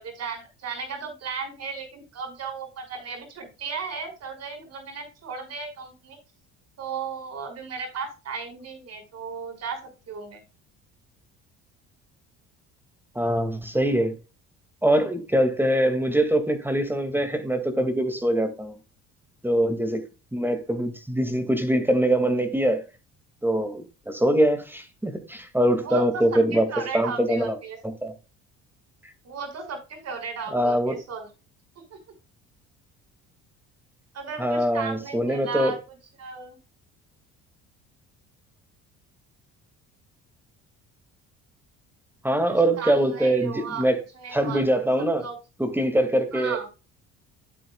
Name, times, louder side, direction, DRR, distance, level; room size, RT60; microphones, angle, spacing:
voice 1, 0.0-6.2 6.8-10.4 25.8-27.8 29.2-31.3 31.9-32.0 34.1-35.8 36.2-36.6 42.5-43.9 44.1-45.4 46.3-46.7, right 5 dB, 55° right, 5.6 m, -35 dB
voice 2, 13.2-14.1 14.8-18.8 19.4-20.0 20.3-22.8 23.4-26.7 26.9-27.6 27.8-28.1 30.5-31.0 34.4-35.7 42.2-43.9 44.3-45.3 45.6-46.6, right 1 dB, 5° right, 2.2 m, -23 dB
12.0 x 7.7 x 2.3 m
supercardioid pair, 85°, 31 cm